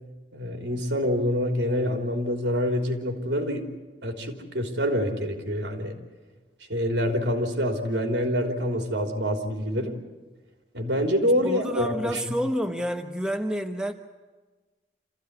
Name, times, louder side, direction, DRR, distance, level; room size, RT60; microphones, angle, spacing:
voice 1, 0.3-3.7 4.0-5.9 6.7-10.0 10.7-12.3, equal, 90° right, 3 dB, 3.4 m, -26 dB
voice 2, 11.4-13.9, equal, 5° right, 5 dB, 1.0 m, -29 dB
27.5 x 15.5 x 9.7 m, 1.3 s
head